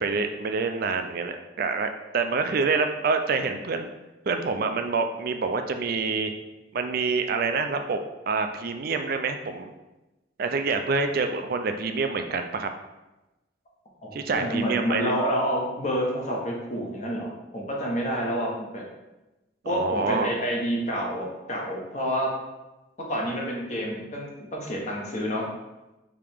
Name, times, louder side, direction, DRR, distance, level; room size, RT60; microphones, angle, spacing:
voice 1, 0.0-3.9 4.3-6.3 6.7-8.0 8.3-9.7 10.4-12.7 14.1-15.1 19.7-20.3, right 4 dB, 50° right, 7 dB, 0.4 m, -27 dB
voice 2, 14.0-18.8 19.6-22.3 23.1-25.4, equal, 40° left, -2 dB, 1.0 m, -28 dB
4.8 x 2.9 x 3.5 m, 1.0 s
head